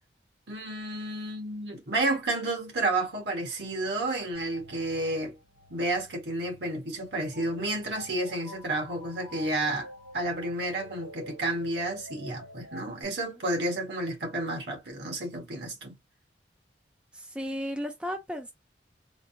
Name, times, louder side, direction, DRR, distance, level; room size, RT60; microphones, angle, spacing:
voice 1, 0.5-5.3 5.7-16.0, right 2 dB, 65° right, 1.6 m, -31 dB
sound 1, 4.3-13.0, left 1 dB, 85° right, 1.7 m, -48 dB
voice 2, 17.1-18.5, equal, 5° right, 0.4 m, -35 dB
3.8 x 2.6 x 2.7 m
head